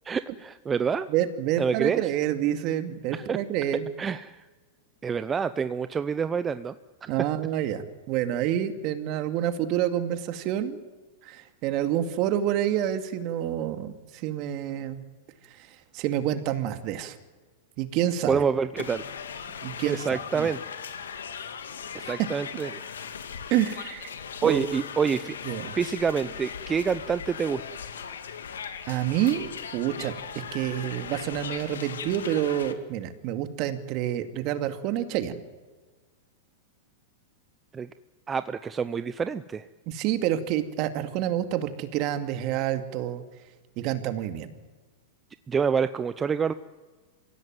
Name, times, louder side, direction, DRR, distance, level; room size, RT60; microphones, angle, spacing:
voice 1, 0.0-1.1 1.6-2.0 3.1-3.4 4.0-4.4 5.0-6.7 7.0-7.1 18.3-19.1 19.9-20.6 21.9-22.8 24.4-27.6 37.7-37.9 38.3-39.7 45.5-46.5, right 6 dB, 20° right, 12 dB, 0.7 m, -27 dB
voice 2, 1.1-3.9 7.1-10.8 11.2-15.0 15.5-17.2 17.8-18.4 19.6-20.5 22.0-22.1 23.5-24.1 24.4-24.7 25.4-25.7 28.9-35.4 39.9-43.2 43.8-44.5, right 11 dB, 45° right, 8 dB, 2.3 m, -28 dB
sound 1, 18.8-32.7, left 7 dB, 90° left, 2.3 m, -39 dB
24.5 x 16.5 x 9.4 m, 1.3 s
hypercardioid pair, 125°, 0 cm